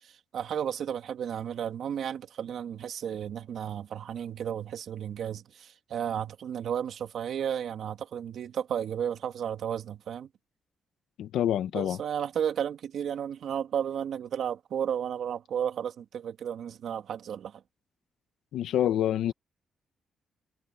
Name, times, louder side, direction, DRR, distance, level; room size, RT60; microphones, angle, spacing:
voice 1, 0.3-10.3 11.7-17.6, right 9 dB, 75° right, 2.5 m, -33 dB
voice 2, 11.2-12.0 18.5-19.3, left 11 dB, 90° left, 1.1 m, -27 dB
cardioid pair, 95°, 0 cm